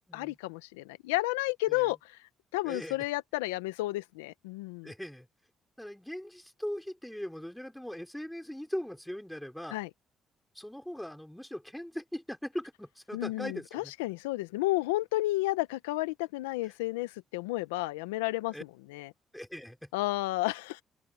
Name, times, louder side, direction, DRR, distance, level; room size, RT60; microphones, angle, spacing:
voice 1, 0.1-2.2 2.5-4.9 9.7-9.9 13.1-18.5 18.9-19.1 19.9-20.8, left 19 dB, 90° left, 0.8 m, -32 dB
voice 2, 2.6-3.0 4.8-5.3 5.8-9.8 10.5-13.9 18.5-18.6 19.3-19.9, equal, 5° left, 4.0 m, -40 dB
open air
hypercardioid pair, 50°, 0 cm